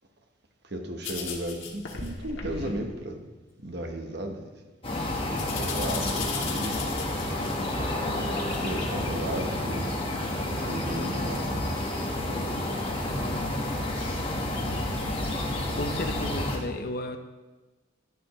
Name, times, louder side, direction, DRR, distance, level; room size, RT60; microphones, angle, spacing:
voice 1, 0.6-3.3 3.6-4.7 5.3-6.8 8.0-12.7, right 1 dB, 55° right, 4 dB, 1.1 m, -36 dB
sound 1, 1.0-3.0 3.6-4.1 5.4-7.5 8.5-9.4 9.9-10.0 10.5-10.6 11.7-11.8, left 5 dB, 75° left, 1.5 m, -37 dB
sound 2, 4.8-16.6, left 1 dB, 30° left, 1.4 m, -30 dB
voice 2, 15.7-17.2, left 1 dB, 50° left, 6 dB, 0.7 m, -33 dB
11.0 x 10.0 x 3.1 m, 1.2 s
head